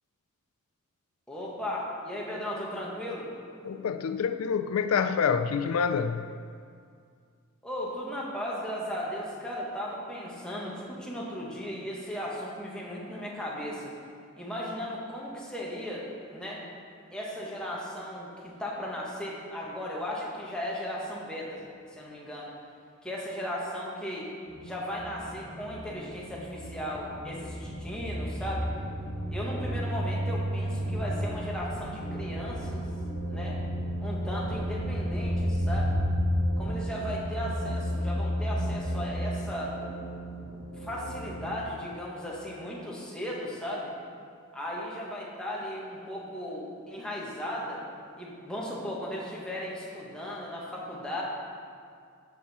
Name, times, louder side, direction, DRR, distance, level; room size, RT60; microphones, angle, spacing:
voice 1, 1.3-3.3 7.6-13.9 14.4-16.6 17.1-21.6 21.9-22.5 23.0-24.3 24.6-28.7 29.3-32.9 33.3-33.6 34.0-36.0 36.6-39.8 40.8-43.9 44.5-47.8 48.2-51.2, equal, 5° left, -5 dB, 1.4 m, -36 dB
voice 2, 3.6-6.3, left 6 dB, 85° left, 11 dB, 0.4 m, -27 dB
sound 1, 24.5-41.5, equal, 50° left, 2.3 m, -32 dB
10.5 x 6.0 x 4.2 m, 2.2 s
head